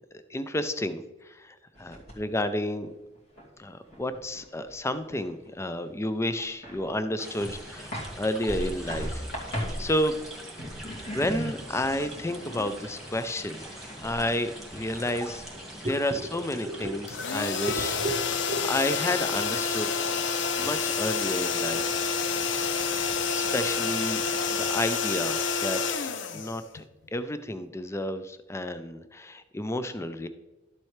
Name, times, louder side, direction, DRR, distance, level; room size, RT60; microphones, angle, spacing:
voice 1, 0.3-2.9 3.6-7.9 8.2-9.2 9.8-10.1 11.1-13.6 14.0-15.4 15.9-17.1 17.3-17.9 18.7-19.9 20.6-22.0 23.3-24.2 24.5-26.8 27.1-30.3, left 1 dB, 15° left, 11 dB, 0.5 m, -31 dB
sound 1, 1.7-2.5 2.9-5.5 5.7-5.8 6.3-7.1 7.4-15.9 17.5-17.6 17.9-18.7 19.1-19.8, equal, 60° left, 2.6 m, -39 dB
sound 2, 7.2-24.9, right 1 dB, ahead, 1.6 m, -43 dB
voice 2, 15.5-16.9 17.4-18.7, right 2 dB, 35° right, 3 dB, 0.9 m, -35 dB
sound 3, 17.1-27.0, left 6 dB, 80° left, 0.6 m, -28 dB
12.0 x 7.5 x 3.2 m, 1.0 s
head